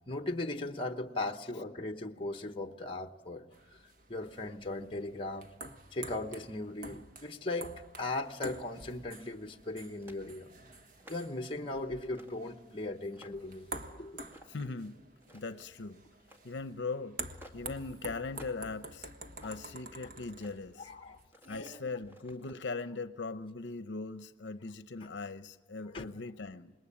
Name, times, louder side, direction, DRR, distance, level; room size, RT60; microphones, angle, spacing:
voice 1, 0.1-3.8 4.1-5.5 5.9-7.7 8.0-10.5 11.1-14.2 19.4-19.5 20.8-21.2 21.4-21.8 25.0-25.1 25.9-26.1, left 2 dB, 30° left, 1.0 m, -38 dB
sound 1, 3.5-21.3, right 2 dB, 50° right, 1.4 m, -48 dB
sound 2, 8.9-9.4 10.0-10.3 10.8-11.4 12.1-12.4 12.9-13.6 14.3-14.7 15.1-15.7 16.2-16.5 17.3-17.7 18.3-18.7 19.1-19.8 20.3-20.6 21.2-22.9, equal, 15° right, 2.0 m, -57 dB
voice 2, 14.5-15.0 15.3-16.0 16.4-17.2 17.5-19.1 19.4-20.9 21.5-26.7, left 3 dB, 70° left, 0.7 m, -40 dB
26.5 x 21.0 x 8.6 m
head